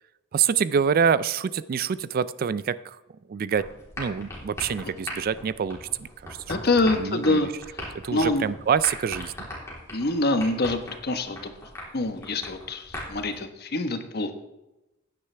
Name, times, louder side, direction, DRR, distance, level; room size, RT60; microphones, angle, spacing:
voice 1, 0.3-3.0 3.3-3.7 4.0-6.6 6.9-7.5 8.0-9.5, right 7 dB, 50° right, 17 dB, 0.3 m, -26 dB
sound 1, 3.5-13.4, left 1 dB, 15° left, 3.4 m, -39 dB
voice 2, 6.5-7.5 8.1-8.5 9.9-11.5 11.9-14.4, left 2 dB, 55° left, 7 dB, 1.2 m, -25 dB
15.5 x 9.6 x 3.3 m, 0.96 s
head